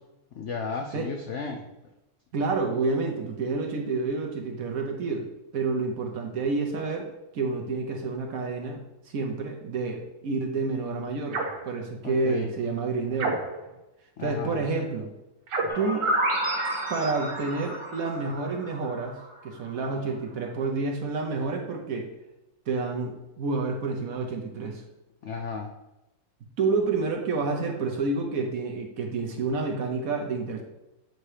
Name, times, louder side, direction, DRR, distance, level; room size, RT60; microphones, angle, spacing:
voice 1, 0.3-1.7 12.0-12.5 14.2-14.6 25.2-25.7, left 5 dB, 70° left, 3 dB, 0.6 m, -34 dB
voice 2, 2.3-5.2 5.5-7.1 7.3-11.4 11.6-13.3 14.2-15.1 15.7-16.1 16.9-19.2 19.4-22.1 22.7-24.8 26.6-30.6, right 3 dB, 60° right, 2 dB, 1.1 m, -29 dB
sound 1, 11.3-11.7 13.2-13.7 15.5-15.9, right 3 dB, 80° right, 1.7 m, -30 dB
sound 2, 15.7-19.4, right 1 dB, 25° right, 0.6 m, -30 dB
7.8 x 2.9 x 4.8 m, 0.96 s
omnidirectional pair, 1.9 m